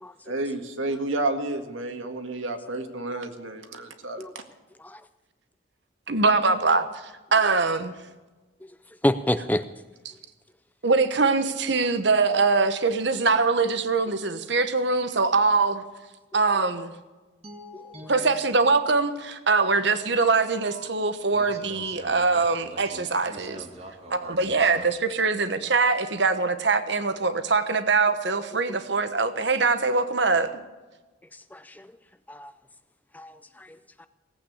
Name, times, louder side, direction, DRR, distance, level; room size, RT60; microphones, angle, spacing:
voice 1, 0.3-4.2, right 2 dB, 75° right, 1.9 m, -30 dB
voice 2, 6.1-8.0 10.8-15.8 16.3-16.9 18.1-23.6 24.1-30.6, right 4 dB, 60° right, 1.2 m, -23 dB
voice 3, 9.0-9.6 17.7-17.8 28.7-28.8 31.5-32.0 32.3-32.5 33.1-34.1, left 1 dB, 10° left, 0.5 m, -29 dB
sound 1, 17.4-19.4 20.7-20.9 21.3-24.8, equal, 30° right, 2.2 m, -45 dB
18.0 x 8.8 x 8.3 m
head